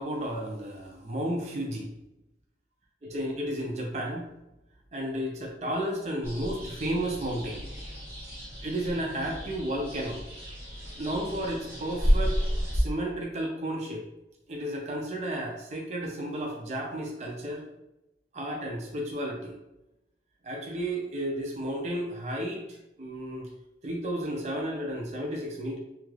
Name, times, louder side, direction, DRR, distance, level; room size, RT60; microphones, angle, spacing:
voice 1, 0.0-1.9 3.0-4.3 4.9-7.6 8.6-10.2 11.0-12.4 12.7-14.0 14.5-17.6 18.3-19.6 20.4-23.5 23.8-25.8, right 1 dB, 40° right, 0 dB, 0.5 m, -32 dB
sound 1, 6.2-12.8, equal, 15° right, 0.9 m, -31 dB
2.8 x 2.4 x 3.2 m, 0.92 s
head